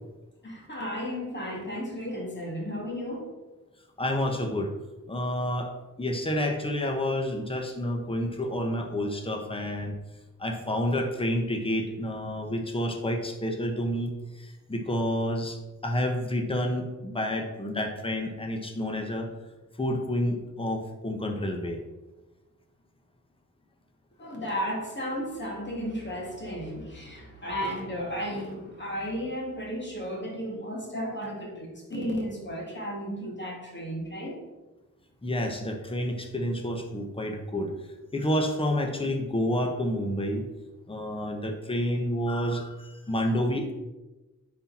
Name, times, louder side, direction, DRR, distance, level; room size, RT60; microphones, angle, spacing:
voice 1, 0.4-3.3 24.2-34.4, equal, 35° left, -1 dB, 2.5 m, -34 dB
voice 2, 4.0-4.7 5.1-5.7 6.0-9.9 10.4-15.6 15.8-19.3 19.8-21.8 35.2-37.7 38.1-40.4 40.9-43.7, left 1 dB, 15° left, 3 dB, 1.1 m, -29 dB
9.9 x 4.4 x 4.3 m, 1.1 s
wide cardioid pair, 85°, 32 cm